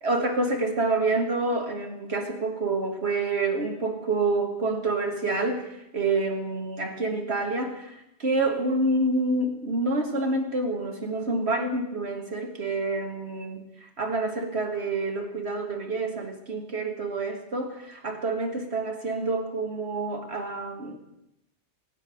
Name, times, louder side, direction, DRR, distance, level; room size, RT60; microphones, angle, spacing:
voice 1, 0.0-21.0, right 2 dB, 65° right, 4 dB, 2.2 m, -28 dB
18.5 x 8.9 x 6.4 m, 0.88 s
omnidirectional pair, 1.2 m